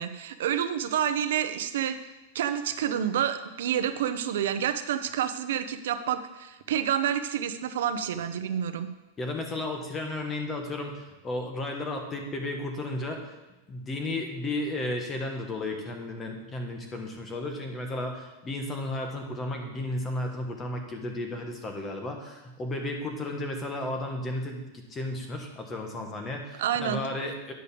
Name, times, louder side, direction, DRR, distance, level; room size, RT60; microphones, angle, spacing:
voice 1, 0.0-2.0 2.3-8.9 26.6-27.0, right 9 dB, 75° right, 10 dB, 0.8 m, -28 dB
voice 2, 9.2-13.3 13.7-27.5, left 2 dB, 15° left, 3 dB, 1.2 m, -33 dB
10.0 x 5.2 x 6.9 m, 1.1 s
supercardioid pair, 170°, 0 cm